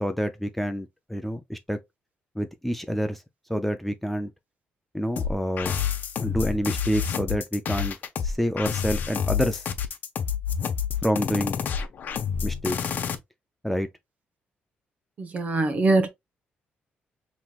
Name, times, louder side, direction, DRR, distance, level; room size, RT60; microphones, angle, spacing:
voice 1, 0.0-1.8 2.4-3.2 3.5-4.3 4.9-5.7 6.2-8.0 8.2-9.6 11.0-11.6 12.4-12.8 13.6-13.9, equal, 5° left, 0.4 m, -27 dB
sound 1, 5.2-13.1, left 7 dB, 50° left, 0.8 m, -28 dB
voice 2, 15.2-16.1, right 2 dB, 40° right, 0.9 m, -22 dB
5.7 x 3.1 x 2.4 m
cardioid pair, 150°, 4 cm